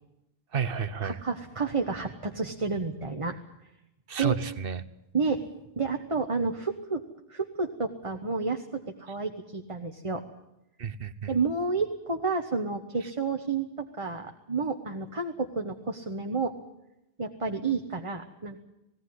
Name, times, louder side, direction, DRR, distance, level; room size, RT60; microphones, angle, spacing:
voice 1, 0.5-1.2 4.1-4.8 10.8-11.3, right 6 dB, 65° right, 13 dB, 1.1 m, -31 dB
voice 2, 1.0-3.4 4.2-4.4 5.1-5.5 5.8-7.0 7.3-10.2 11.3-16.5 17.2-18.6, right 4 dB, 30° right, 4 dB, 1.3 m, -30 dB
19.0 x 18.0 x 9.6 m, 0.91 s
omnidirectional pair, 1.0 m